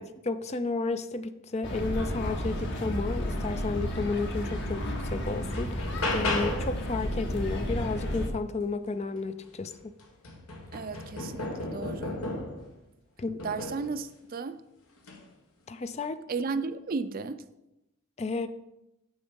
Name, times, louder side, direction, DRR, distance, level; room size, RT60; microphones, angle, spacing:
voice 1, 0.0-4.8 5.1-5.8 6.1-10.0 13.2-13.4 15.7-16.2 18.2-18.5, left 3 dB, 30° left, 0.4 m, -32 dB
sound 1, 1.6-8.3, equal, 55° left, 1.4 m, -32 dB
sound 2, 4.4-4.5 5.0-6.8 9.2-9.3 9.7-12.7 13.4-13.9 15.0-15.2, left 2 dB, 75° left, 1.5 m, -34 dB
voice 2, 10.7-12.2 13.4-14.6 16.3-17.4, right 4 dB, 40° right, 0.4 m, -34 dB
7.1 x 6.4 x 5.3 m
head